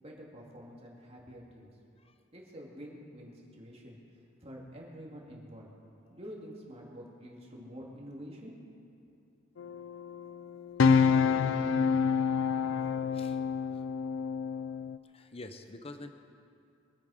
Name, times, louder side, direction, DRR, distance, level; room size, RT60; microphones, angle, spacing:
voice 1, 0.0-1.7 2.3-5.7 6.1-8.5, equal, 30° right, -2 dB, 2.4 m, -47 dB
sound 1, 9.6-15.0, left 6 dB, 75° left, 0.4 m, -28 dB
voice 2, 15.0-16.1, left 2 dB, 30° left, 7 dB, 0.7 m, -46 dB
23.5 x 9.3 x 5.0 m, 2.5 s
head